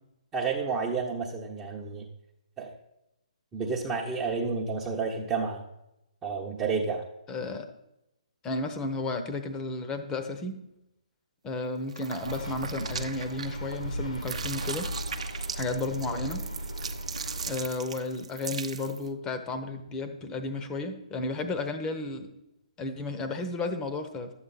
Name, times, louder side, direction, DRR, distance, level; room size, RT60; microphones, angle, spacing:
voice 1, 0.3-2.1 2.6-2.7 3.5-5.6 6.2-7.0, right 5 dB, 15° right, -3 dB, 1.0 m, -30 dB
voice 2, 7.3-7.7 8.4-10.6 11.4-14.9 15.6-16.4 17.5-22.3 22.8-24.3, left 2 dB, 15° left, 8 dB, 1.0 m, -33 dB
sound 1, 11.9-13.8 14.1-19.1, right 6 dB, 60° right, 0.9 m, -39 dB
Bird, 12.2-17.6, equal, 80° left, 2.0 m, -36 dB
11.5 x 8.0 x 4.2 m, 0.89 s
figure-of-eight pair, 135°, 4 cm